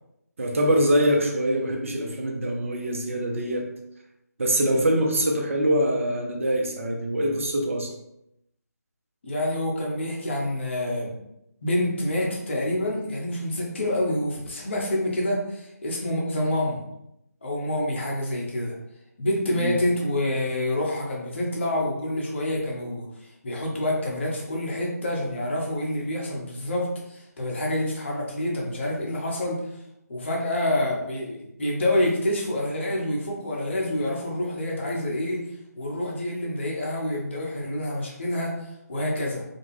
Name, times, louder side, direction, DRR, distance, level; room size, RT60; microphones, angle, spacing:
voice 1, 0.4-3.7 4.4-7.9 19.5-19.8, right 1 dB, 50° right, 1 dB, 0.5 m, -24 dB
voice 2, 9.2-11.1 11.6-16.8 17.4-18.7 19.2-23.1 23.4-29.6 30.1-35.4 35.8-38.5 38.9-39.4, left 1 dB, 40° left, -2 dB, 0.8 m, -27 dB
2.5 x 2.2 x 3.1 m, 0.82 s
figure-of-eight pair, 160°, 9 cm